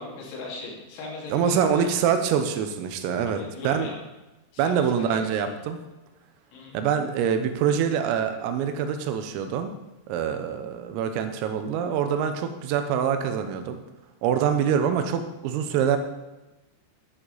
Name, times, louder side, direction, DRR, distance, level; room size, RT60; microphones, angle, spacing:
voice 1, 0.0-1.8 3.4-4.0 4.5-5.2 6.5-6.8, left 3 dB, 80° left, -3 dB, 5.2 m, -38 dB
voice 2, 1.3-3.9 4.6-5.8 6.7-9.7 10.1-13.8 14.2-16.0, right 8 dB, 85° right, 7 dB, 3.5 m, -25 dB
13.0 x 8.6 x 4.2 m, 1.0 s
omnidirectional pair, 6.0 m